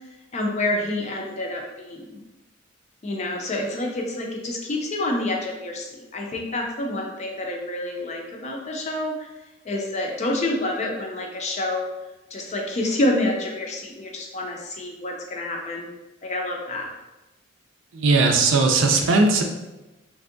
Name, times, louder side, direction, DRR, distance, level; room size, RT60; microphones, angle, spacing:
voice 1, 0.3-2.2 3.0-9.3 9.6-11.9 12.3-15.9 16.2-16.9, left 1 dB, 35° left, 1 dB, 0.5 m, -28 dB
voice 2, 17.9-19.4, right 3 dB, 85° right, 3 dB, 0.4 m, -18 dB
3.3 x 2.6 x 2.5 m, 1.0 s
head